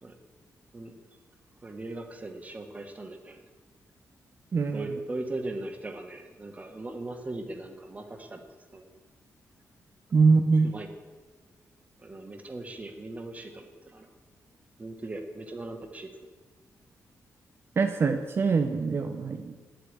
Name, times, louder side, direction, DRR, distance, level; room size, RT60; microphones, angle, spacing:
voice 1, 1.6-3.4 4.7-8.4 8.7-8.9 10.6-10.9 12.0-14.1 14.8-16.3, right 2 dB, 25° right, 5 dB, 1.6 m, -39 dB
voice 2, 4.5-4.9 10.1-10.7 17.8-19.6, right 4 dB, 45° right, 5 dB, 0.8 m, -23 dB
9.9 x 8.3 x 9.2 m, 1.3 s
wide cardioid pair, 120°, 6 cm